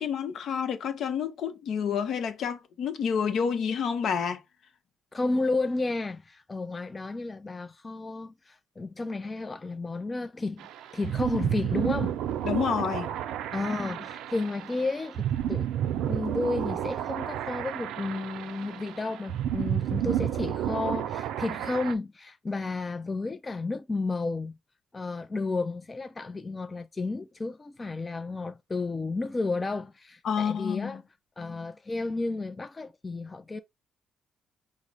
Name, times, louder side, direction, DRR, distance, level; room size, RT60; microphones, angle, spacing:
voice 1, 0.0-4.4 12.4-13.1 30.2-31.0, left 7 dB, 65° left, 0.6 m, -29 dB
voice 2, 5.1-12.2 13.5-15.7 16.1-24.6 24.9-31.0 31.4-33.6, left 3 dB, 25° left, 0.4 m, -32 dB
sound 1, 10.6-21.9, right 10 dB, 90° right, 0.4 m, -31 dB
4.8 x 2.0 x 3.9 m
cardioid pair, 90°, 0 cm